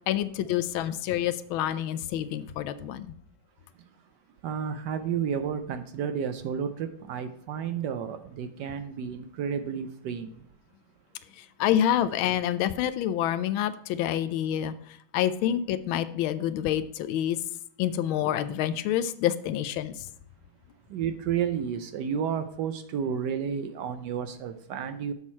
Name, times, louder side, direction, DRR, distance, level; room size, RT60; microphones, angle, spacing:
voice 1, 0.1-3.1 11.4-14.7 15.1-17.4 17.8-20.1, left 11 dB, 90° left, 1.4 m, -27 dB
voice 2, 4.4-10.4 20.9-25.1, right 7 dB, 70° right, 1.1 m, -31 dB
7.2 x 6.3 x 4.4 m
omnidirectional pair, 2.2 m